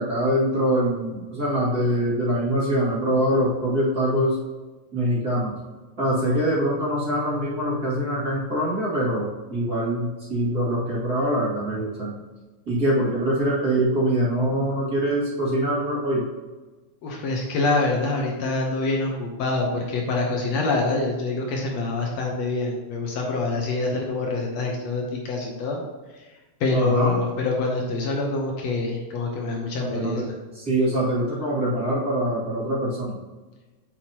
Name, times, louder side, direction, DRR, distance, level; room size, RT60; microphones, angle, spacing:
voice 1, 0.0-4.4 4.9-5.5 6.0-12.2 12.7-16.2 26.7-27.2 29.8-30.2 30.5-33.2, right 1 dB, 30° right, -8 dB, 2.5 m, -24 dB
voice 2, 17.0-25.8 26.1-26.2 26.6-30.3, left 3 dB, 65° left, 0 dB, 2.0 m, -26 dB
8.6 x 7.9 x 2.9 m, 1.2 s
omnidirectional pair, 3.4 m